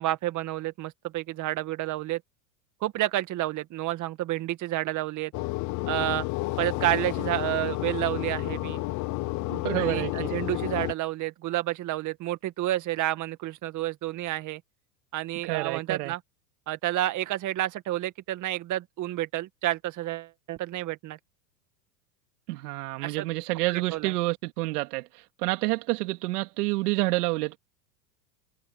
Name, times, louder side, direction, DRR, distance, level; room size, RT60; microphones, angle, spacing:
voice 1, 0.0-2.2 2.8-5.3 5.9-6.3 6.6-8.8 9.8-14.6 15.1-16.2 16.7-21.2 23.0-23.3 23.7-24.1, right 15 dB, 35° right, 2.0 m, -30 dB
sound 1, 5.3-10.9, left 21 dB, 35° left, 0.7 m, -31 dB
voice 2, 9.5-10.3 15.5-16.1 22.5-27.6, right 21 dB, 65° right, 2.9 m, -29 dB
hypercardioid pair, 120°, 49 cm